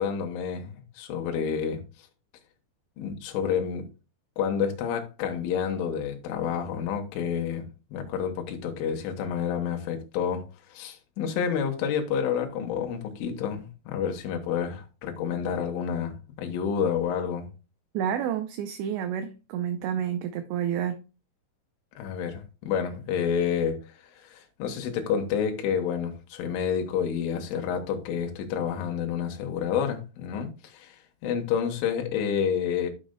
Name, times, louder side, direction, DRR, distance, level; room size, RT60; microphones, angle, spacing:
voice 1, 0.0-1.8 3.0-3.9 4.4-7.6 7.9-10.5 10.7-17.5 22.0-32.9, left 7 dB, 80° left, 3.7 m, -29 dB
voice 2, 17.9-21.0, right 9 dB, 80° right, 2.6 m, -29 dB
12.5 x 6.3 x 2.2 m
omnidirectional pair, 5.7 m